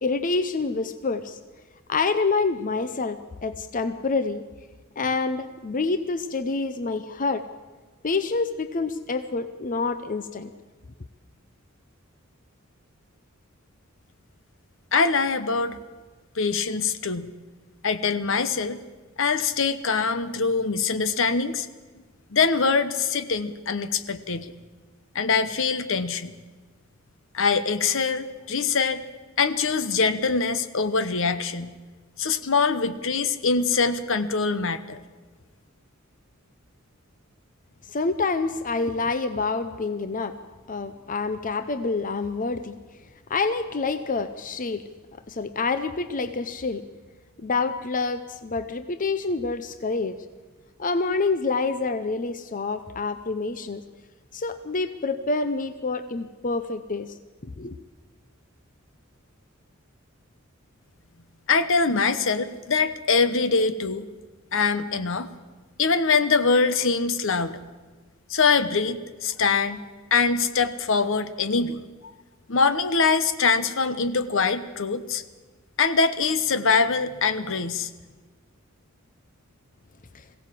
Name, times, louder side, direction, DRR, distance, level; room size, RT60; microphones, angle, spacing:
voice 1, 0.0-1.4 1.9-4.4 5.0-7.4 8.0-10.5 37.9-40.4 40.7-42.8 43.3-44.8 45.3-46.8 47.4-50.2 50.8-53.8 54.3-57.2 57.4-57.7 80.1-80.2, left 3 dB, 40° left, 10 dB, 0.7 m, -27 dB
voice 2, 14.9-15.8 16.3-17.3 17.8-18.8 19.2-21.7 22.3-24.5 25.1-26.3 27.3-29.0 29.4-31.7 32.2-35.0 61.5-64.1 64.5-65.3 65.8-67.6 68.3-69.8 70.1-71.8 72.5-75.2 75.8-77.9, left 4 dB, 65° left, 12 dB, 1.0 m, -23 dB
21.5 x 16.5 x 7.6 m, 1.4 s
head